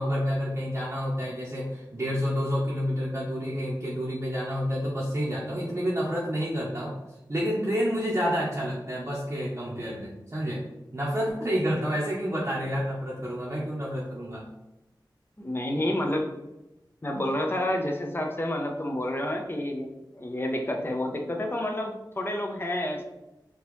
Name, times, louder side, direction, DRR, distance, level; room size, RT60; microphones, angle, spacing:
voice 1, 0.0-7.0 7.3-10.6 10.9-14.4, equal, 35° right, -6 dB, 0.8 m, -29 dB
voice 2, 15.4-16.3 17.0-19.9 20.1-23.0, left 1 dB, 30° left, 2 dB, 0.7 m, -29 dB
3.6 x 2.8 x 3.0 m, 0.97 s
wide cardioid pair, 45°, 8 cm